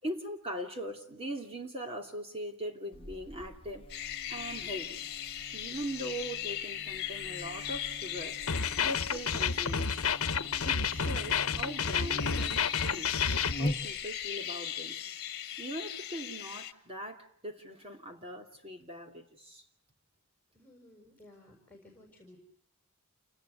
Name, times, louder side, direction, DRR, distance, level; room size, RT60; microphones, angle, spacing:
voice 1, 0.0-3.8 4.3-5.0 5.5-8.4 8.8-9.9 10.6-13.2 13.6-15.0 15.6-19.6, equal, 25° right, 2.8 m, -40 dB
Buzz, 2.9-14.3, left 1 dB, 25° left, 1.3 m, -43 dB
sound 1, 3.9-16.7, left 10 dB, 45° left, 1.8 m, -39 dB
sound 2, 8.5-13.5, left 6 dB, 70° left, 1.2 m, -30 dB
voice 2, 20.5-22.4, left 1 dB, 10° left, 6.2 m, -56 dB
29.5 x 19.5 x 8.3 m
head